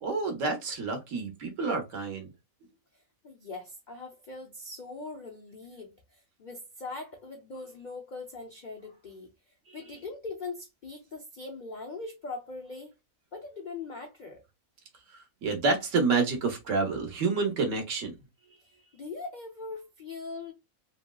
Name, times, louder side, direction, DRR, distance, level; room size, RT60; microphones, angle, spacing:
voice 1, 0.0-2.3 15.4-18.1, right 4 dB, 65° right, 1.2 m, -28 dB
voice 2, 2.9-12.9 13.3-14.4 18.9-20.5, left 3 dB, 60° left, 0.5 m, -41 dB
3.0 x 2.7 x 2.2 m
omnidirectional pair, 1.5 m